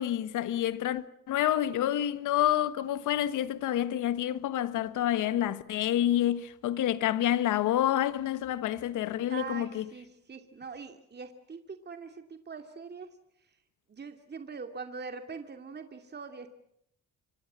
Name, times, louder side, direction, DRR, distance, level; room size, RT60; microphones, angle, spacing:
voice 1, 0.0-9.8, left 12 dB, 85° left, 1.6 m, -28 dB
voice 2, 9.3-13.1 13.9-16.5, right 5 dB, 35° right, 2.6 m, -42 dB
27.5 x 25.0 x 7.6 m
cardioid pair, 90°, 30 cm